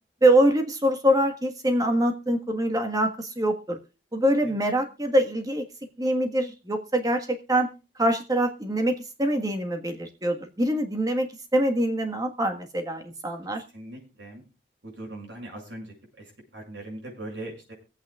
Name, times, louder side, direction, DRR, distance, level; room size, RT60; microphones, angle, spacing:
voice 1, 0.2-3.8 4.1-5.6 6.0-7.7 8.0-13.6, right 1 dB, 20° right, 5 dB, 1.5 m, -24 dB
voice 2, 13.7-14.4 14.8-17.7, right 1 dB, 85° right, 0 dB, 6.8 m, -40 dB
24.0 x 8.5 x 2.4 m, 0.33 s
head